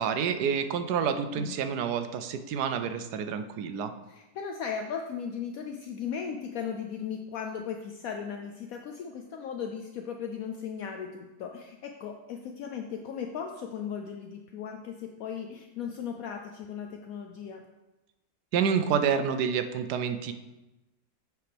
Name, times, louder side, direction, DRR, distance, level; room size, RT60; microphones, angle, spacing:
voice 1, 0.0-3.9 18.5-20.3, right 7 dB, 90° right, 9 dB, 1.2 m, -28 dB
voice 2, 4.1-17.6, left 7 dB, 70° left, 3 dB, 1.0 m, -37 dB
9.4 x 6.6 x 3.4 m, 1.1 s
omnidirectional pair, 1.7 m